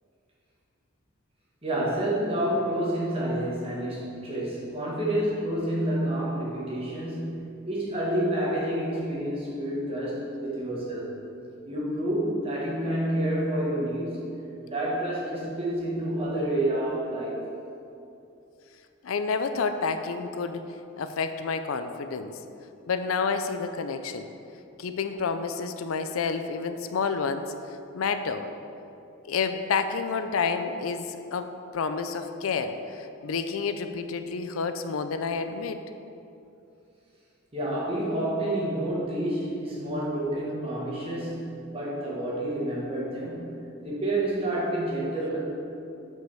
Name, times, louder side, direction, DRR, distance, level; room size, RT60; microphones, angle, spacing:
voice 1, 1.6-11.1 11.6-14.3 14.6-17.4 37.5-45.4, right 1 dB, 30° right, -6 dB, 1.7 m, -29 dB
voice 2, 19.0-20.7 21.0-22.3 22.9-24.3 24.8-27.5 27.9-28.5 29.2-35.8, left 5 dB, 90° left, 9 dB, 0.5 m, -29 dB
5.9 x 5.6 x 5.6 m, 2.7 s
head